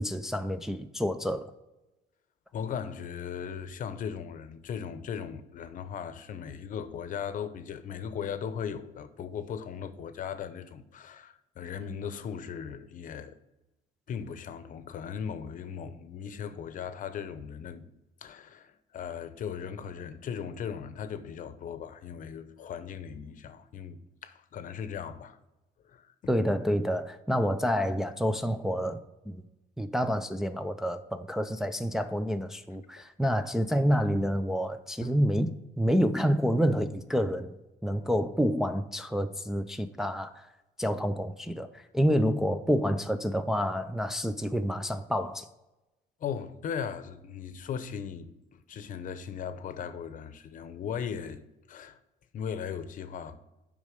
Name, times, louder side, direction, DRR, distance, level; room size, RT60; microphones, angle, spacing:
voice 1, 0.0-1.5 26.3-29.0 29.3-29.4 29.8-37.5 37.8-40.5 40.8-45.5, equal, 5° right, 0.4 m, -28 dB
voice 2, 2.5-13.4 14.1-17.9 18.2-25.4 25.8-26.1 33.0-33.1 35.0-35.1 46.2-51.4 51.7-52.0 52.3-53.4, left 7 dB, 50° left, 0.8 m, -38 dB
8.1 x 5.4 x 5.1 m
cardioid pair, 110°, 17 cm